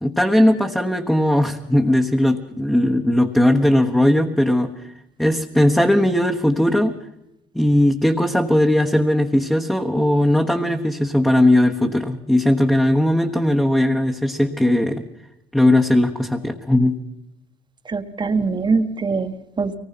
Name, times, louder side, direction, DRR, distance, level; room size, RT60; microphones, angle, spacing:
voice 1, 0.0-4.7 5.2-7.0 7.5-15.0 15.5-17.0, left 1 dB, 5° left, 1 dB, 1.3 m, -18 dB
voice 2, 17.9-19.8, right 4 dB, 25° right, 9 dB, 1.4 m, -22 dB
24.0 x 19.0 x 6.0 m, 0.85 s
cardioid pair, 110°, 17 cm